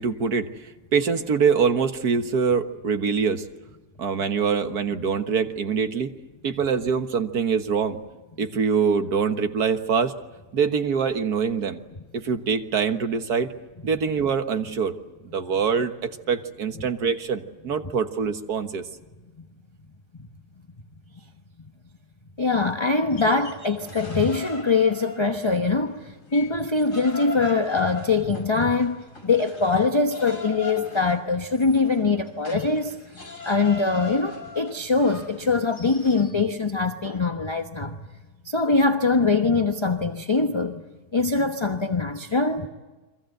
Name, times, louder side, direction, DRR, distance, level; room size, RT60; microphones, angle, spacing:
voice 1, 0.0-3.5 4.0-6.1 6.4-8.0 8.4-10.1 10.5-11.8 12.1-13.5 13.8-14.9 15.2-18.9, right 6 dB, 70° right, 1.9 m, -24 dB
voice 2, 22.4-38.1 38.4-40.8 41.1-42.7, left 3 dB, 20° left, 1.0 m, -23 dB
sound 1, 23.0-25.7 26.1-36.3, left 4 dB, 50° left, 5.2 m, -39 dB
30.0 x 23.5 x 7.9 m
omnidirectional pair, 1.7 m